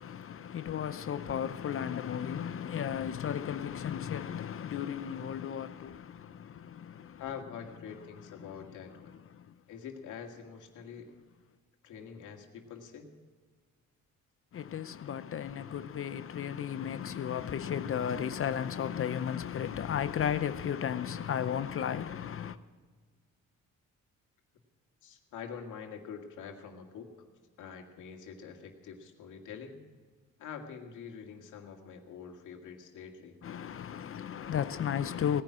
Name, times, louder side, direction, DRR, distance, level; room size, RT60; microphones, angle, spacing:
voice 1, 0.0-7.2 8.4-8.6 9.1-9.5 14.5-22.6 33.4-35.4, left 9 dB, 45° left, 0.6 m, -34 dB
voice 2, 7.2-9.2 9.7-11.1 11.8-13.1 25.0-27.3 27.6-29.8 30.4-33.4, left 7 dB, 85° left, 2.1 m, -45 dB
18.0 x 10.5 x 6.2 m
cardioid pair, 90°, 30 cm